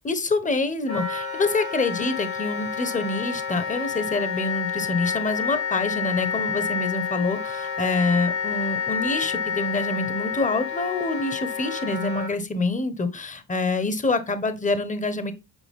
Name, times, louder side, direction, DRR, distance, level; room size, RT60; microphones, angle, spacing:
voice 1, 0.0-15.3, left 3 dB, 25° left, 1.4 m, -26 dB
Wind instrument woodwind instrument, 0.9-12.3, left 6 dB, 75° left, 5.5 m, -29 dB
9.3 x 4.9 x 3.7 m
cardioid pair, 90°, 30 cm